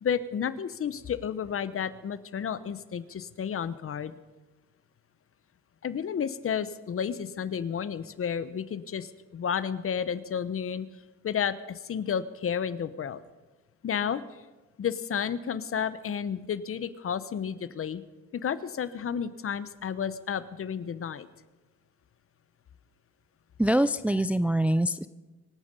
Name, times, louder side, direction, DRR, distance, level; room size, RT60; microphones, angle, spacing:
voice 1, 0.0-4.1 5.8-10.9 11.2-13.2 13.8-14.2 14.8-18.0 18.3-21.3, left 7 dB, 45° left, 15 dB, 0.9 m, -31 dB
voice 2, 23.6-25.1, right 1 dB, 5° right, 13 dB, 0.4 m, -24 dB
25.5 x 8.8 x 5.4 m, 1.2 s
cardioid pair, 90°, 30 cm